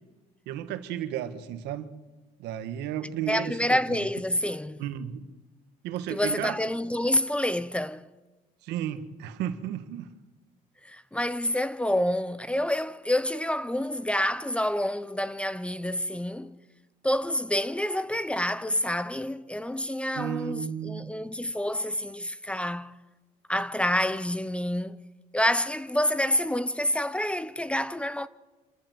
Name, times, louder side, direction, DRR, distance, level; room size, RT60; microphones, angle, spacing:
voice 1, 0.4-1.9 2.4-4.0 4.8-5.3 5.8-6.6 8.6-10.1 20.1-21.1, right 10 dB, 90° right, 1.5 m, -33 dB
voice 2, 3.3-4.8 6.1-8.1 10.8-16.5 17.0-23.0 23.5-25.0 25.3-28.3, left 1 dB, 5° left, 0.7 m, -28 dB
27.0 x 14.0 x 7.9 m
cardioid pair, 110°, 17 cm